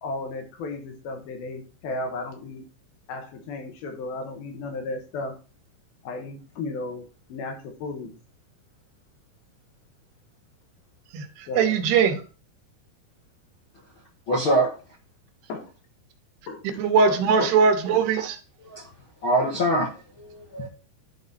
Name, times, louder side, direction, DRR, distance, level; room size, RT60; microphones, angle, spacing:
voice 1, 0.0-2.7 3.1-5.4 6.0-8.1 11.5-11.8 14.6-14.7 15.5-15.7 16.5-16.8 17.1-17.5, left 3 dB, 70° left, 4 dB, 3.0 m, -34 dB
voice 2, 11.6-12.1 16.8-18.4, right 5 dB, 80° right, 6 dB, 3.1 m, -20 dB
voice 3, 14.3-14.7 18.6-18.8 19.2-19.9 20.2-20.7, right 1 dB, 55° left, -4 dB, 1.4 m, -23 dB
11.0 x 4.1 x 4.0 m, 0.36 s
omnidirectional pair, 4.8 m